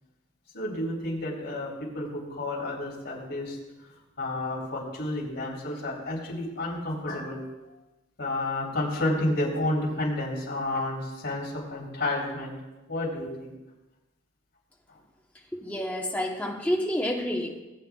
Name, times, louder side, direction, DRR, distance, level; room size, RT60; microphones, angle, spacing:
voice 1, 0.5-7.5 8.2-12.6 12.9-13.5 14.9-15.0, left 1 dB, 55° left, -4 dB, 3.5 m, -31 dB
voice 2, 15.5-17.6, equal, 5° left, -1 dB, 1.1 m, -29 dB
20.0 x 9.0 x 2.4 m, 1.1 s
head